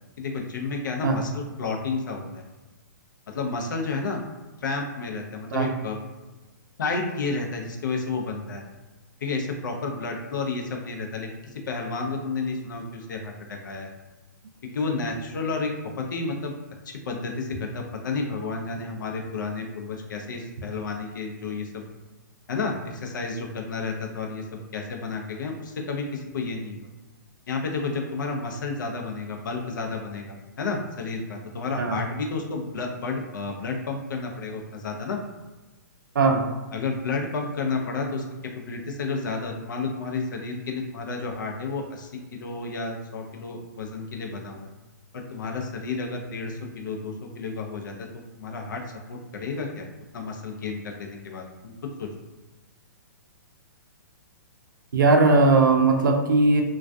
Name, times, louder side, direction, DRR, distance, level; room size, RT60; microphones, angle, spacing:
voice 1, 0.2-2.5 3.3-4.2 4.6-6.0 6.8-8.6 9.2-13.9 14.7-15.7 16.0-16.5 16.9-21.8 22.5-26.9 27.5-35.2 36.7-38.2 38.5-44.7 45.1-48.8 49.1-49.9 50.1-51.7 52.0-52.1, left 4 dB, 80° left, 2 dB, 0.5 m, -31 dB
voice 2, 54.9-56.6, right 3 dB, 90° right, 3 dB, 0.5 m, -19 dB
2.3 x 2.3 x 2.5 m, 1.2 s
hypercardioid pair, 155°, 10 cm